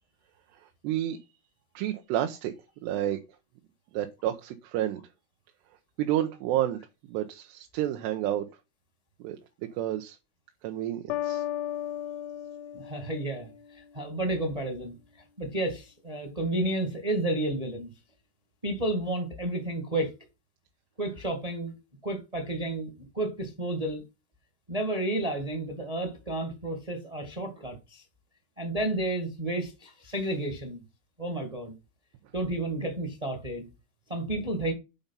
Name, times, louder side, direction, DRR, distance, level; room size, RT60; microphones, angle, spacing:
voice 1, 0.5-1.2 1.7-2.5 2.8-3.2 3.9-5.0 6.0-6.8 7.1-8.5 9.2-9.4 9.7-10.2 10.6-11.4, right 12 dB, 90° right, 3.1 m, -30 dB
sound 1, 11.1-13.9, left 12 dB, 85° left, 3.0 m, -35 dB
voice 2, 12.7-13.5 13.9-14.9 15.4-17.9 18.6-20.1 21.0-21.7 22.0-24.0 24.7-28.0 28.6-30.8 31.2-31.7 32.3-33.7 34.1-34.7, right 1 dB, 20° right, 0.9 m, -31 dB
8.6 x 5.3 x 5.7 m
omnidirectional pair, 4.8 m